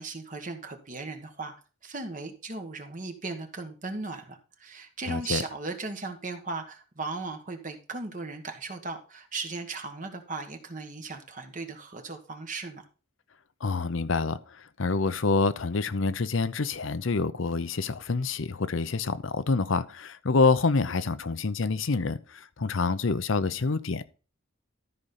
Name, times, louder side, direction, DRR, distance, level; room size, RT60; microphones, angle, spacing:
voice 1, 0.0-1.5 1.8-12.8, right 3 dB, 40° right, 1.3 m, -37 dB
voice 2, 5.1-5.4 13.6-24.1, left 4 dB, 70° left, 0.7 m, -27 dB
13.0 x 5.2 x 4.2 m
head